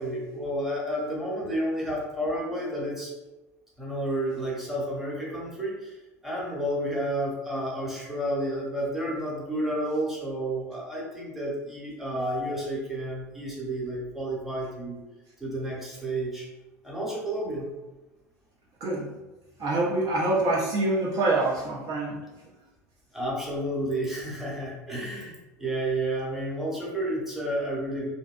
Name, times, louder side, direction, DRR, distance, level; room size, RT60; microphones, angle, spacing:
voice 1, 0.0-3.1 3.8-6.0 6.2-15.0 15.4-16.5 16.8-17.7 23.1-28.1, right 1 dB, 5° right, -5 dB, 0.9 m, -31 dB
voice 2, 19.6-22.2, right 2 dB, 45° right, -4 dB, 0.5 m, -25 dB
2.7 x 2.2 x 2.2 m, 1.1 s
hypercardioid pair, 75°, 9 cm